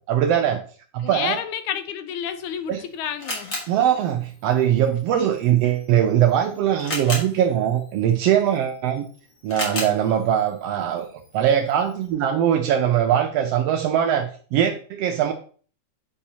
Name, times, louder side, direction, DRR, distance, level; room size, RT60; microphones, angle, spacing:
voice 1, 0.1-0.6 0.9-1.4 2.7-2.8 3.7-9.1 9.4-11.1 11.3-15.3, right 10 dB, 80° right, 5 dB, 1.5 m, -21 dB
voice 2, 1.0-3.5, left 9 dB, 85° left, 10 dB, 2.1 m, -30 dB
Camera, 2.3-12.1, left 2 dB, 35° left, 1.8 m, -37 dB
8.5 x 5.4 x 2.8 m, 0.42 s
omnidirectional pair, 3.3 m